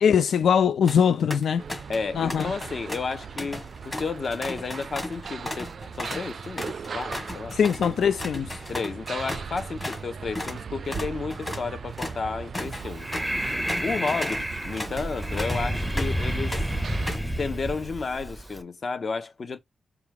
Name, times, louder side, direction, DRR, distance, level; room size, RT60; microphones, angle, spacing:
voice 1, 0.0-1.6 2.1-2.5 7.5-8.6, left 7 dB, 85° left, 0.3 m, -22 dB
sound 1, 0.6-1.0 1.3-2.0 2.3-10.1 10.3-10.6 10.9-16.2 16.5-17.3, left 1 dB, 20° left, 1.5 m, -36 dB
sound 2, 1.6-17.2, right 6 dB, 55° right, 0.3 m, -39 dB
voice 2, 1.9-7.6 8.7-13.1 13.8-16.6 17.4-19.6, left 4 dB, 45° left, 0.8 m, -32 dB
Breathing, 12.6-18.6, equal, ahead, 0.6 m, -30 dB
4.7 x 2.3 x 3.4 m
wide cardioid pair, 135°, 0 cm